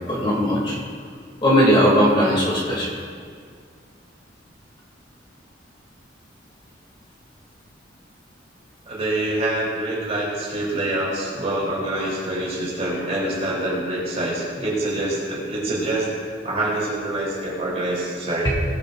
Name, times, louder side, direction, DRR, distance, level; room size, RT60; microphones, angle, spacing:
voice 1, 0.1-0.8 1.4-2.9, equal, 30° left, -5 dB, 2.6 m, -18 dB
voice 2, 8.9-18.5, right 1 dB, 35° right, -5 dB, 3.4 m, -26 dB
18.0 x 10.5 x 2.6 m, 2.1 s
head